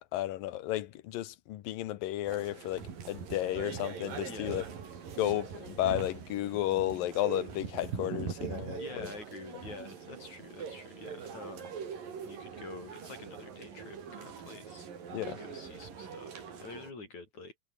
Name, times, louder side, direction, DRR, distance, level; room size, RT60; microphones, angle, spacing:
voice 1, 0.0-4.6 5.2-9.1 15.1-15.4, left 14 dB, 90° left, 2.8 m, -33 dB
sound 1, 2.2-16.9, right 6 dB, 80° right, 5.3 m, -42 dB
voice 2, 4.3-4.7 8.8-11.7 12.2-14.9 15.4-17.5, left 3 dB, 55° left, 9.3 m, -47 dB
omnidirectional pair, 3.9 m